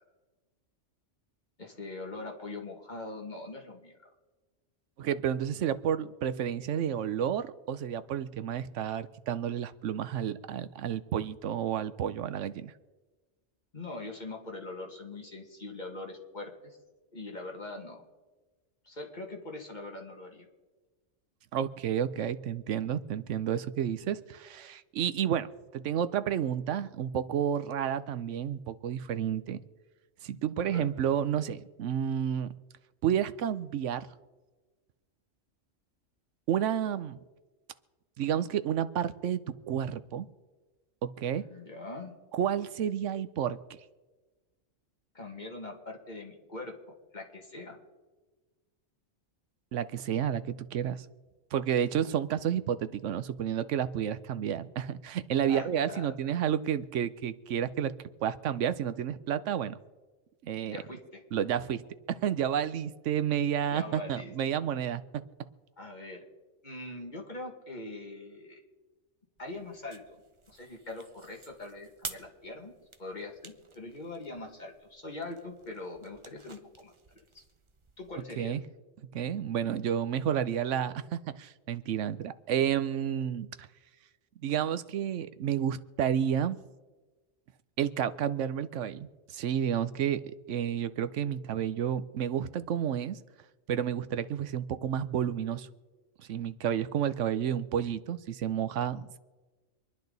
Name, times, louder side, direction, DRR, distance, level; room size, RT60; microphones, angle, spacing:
voice 1, 1.6-3.9 13.7-16.8 17.1-18.0 18.8-20.5 30.6-30.9 41.4-42.1 45.1-46.7 47.1-47.8 55.5-56.1 60.7-61.2 63.7-64.3 65.8-66.3 66.6-68.6 69.4-70.2 70.5-72.7 73.0-77.4 78.0-78.6, left 2 dB, 40° left, 1 dB, 2.2 m, -42 dB
voice 2, 5.0-12.7 21.5-29.6 30.2-32.5 33.0-34.1 36.5-37.2 38.2-39.4 39.7-40.3 41.0-41.4 42.3-43.8 49.7-51.1 51.5-57.9 58.2-59.8 60.4-60.8 61.3-61.8 62.1-65.2 78.4-78.6 79.1-83.7 84.4-86.6 87.8-93.2 93.7-95.7 96.3-99.2, right 9 dB, 80° right, 13 dB, 1.0 m, -31 dB
sound 1, 69.4-78.2, right 4 dB, 30° right, 0.8 m, -50 dB
26.5 x 10.5 x 4.0 m, 1.3 s
omnidirectional pair, 1.2 m